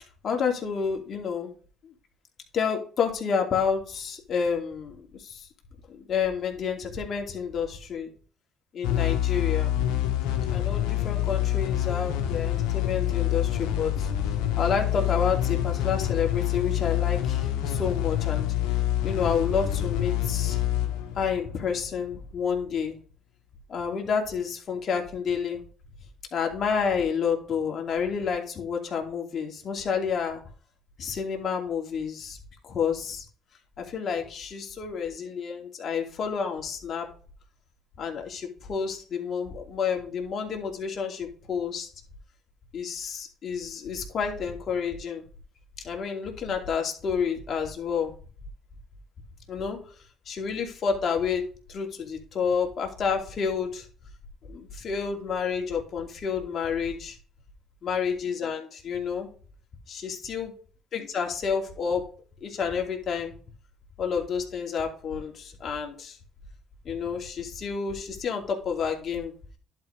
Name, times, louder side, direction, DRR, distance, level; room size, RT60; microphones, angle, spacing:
voice 1, 0.2-1.5 2.5-5.5 5.9-8.1 8.7-9.7 10.5-14.1 14.6-18.5 19.0-20.6 21.1-23.0 23.7-25.6 26.3-30.4 31.0-32.4 32.6-33.2 33.8-37.1 38.0-41.9 42.7-45.2 45.8-48.1 49.5-49.8 50.3-53.9 54.5-57.2 57.8-59.3 59.9-60.5 60.9-62.0 62.4-63.4 64.0-66.2 66.8-69.3, left 6 dB, 50° left, 2 dB, 2.7 m, -29 dB
sound 1, 8.8-22.1, left 12 dB, 85° left, 1.6 m, -27 dB
11.0 x 5.2 x 3.4 m, 0.41 s
supercardioid pair, 80°, 0 cm